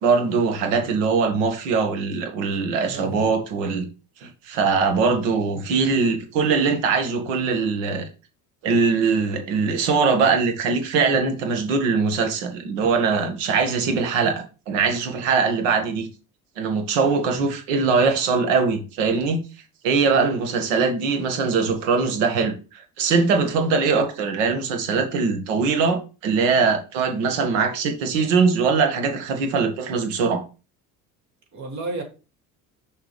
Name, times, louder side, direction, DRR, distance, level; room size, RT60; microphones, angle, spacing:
voice 1, 0.0-3.8 4.2-8.1 8.6-16.1 16.6-19.4 19.8-30.4, right 5 dB, 85° right, 2.0 m, -22 dB
voice 2, 2.9-3.4 31.5-32.0, right 3 dB, 50° right, 3.0 m, -32 dB
6.4 x 5.4 x 3.4 m
supercardioid pair, 90°, 36 cm